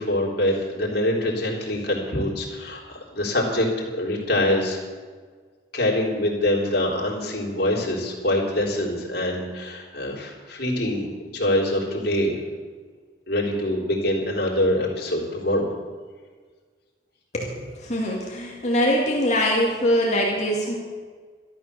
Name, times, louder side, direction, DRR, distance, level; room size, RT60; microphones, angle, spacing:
voice 1, 0.0-4.8 5.7-12.4 13.3-15.7, left 1 dB, 60° left, -3 dB, 3.7 m, -24 dB
voice 2, 17.3-20.8, equal, 40° left, -2 dB, 2.4 m, -23 dB
13.0 x 12.5 x 6.9 m, 1.5 s
head